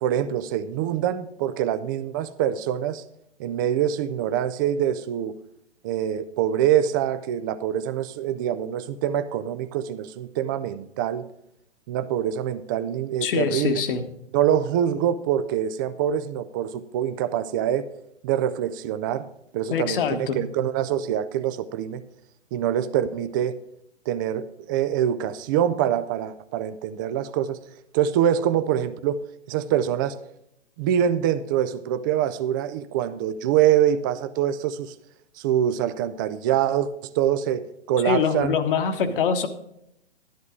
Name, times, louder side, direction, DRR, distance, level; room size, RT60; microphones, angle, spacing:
voice 1, 0.0-3.0 3.4-5.3 5.8-11.3 11.9-13.8 14.3-17.9 18.2-19.2 19.5-22.0 22.5-23.6 24.1-27.6 27.9-29.2 29.5-30.2 30.8-34.9 35.4-36.9 37.1-38.6 39.1-39.2, right 10 dB, 20° right, 12 dB, 0.4 m, -25 dB
voice 2, 13.2-14.0 19.7-20.4 38.0-39.5, left 6 dB, 50° left, 8 dB, 1.4 m, -24 dB
12.0 x 11.0 x 3.7 m, 0.77 s
figure-of-eight pair, 120°, 34 cm